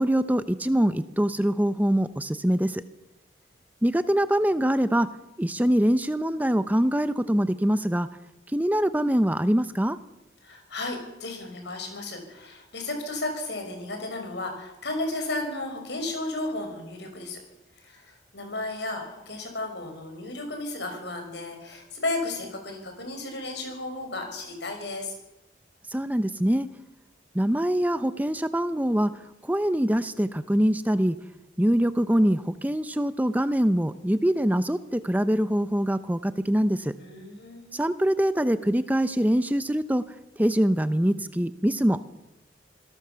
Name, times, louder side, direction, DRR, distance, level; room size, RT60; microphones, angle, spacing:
voice 1, 0.0-2.8 3.8-5.1 5.4-8.1 8.5-10.0 25.9-26.7 27.3-31.2 31.6-36.9 37.7-40.0 40.4-42.1, equal, 10° right, 12 dB, 0.7 m, -24 dB
voice 2, 10.4-17.4 17.8-25.1 37.0-37.8, left 2 dB, 70° left, 4 dB, 6.0 m, -34 dB
26.5 x 17.5 x 6.9 m, 0.98 s
head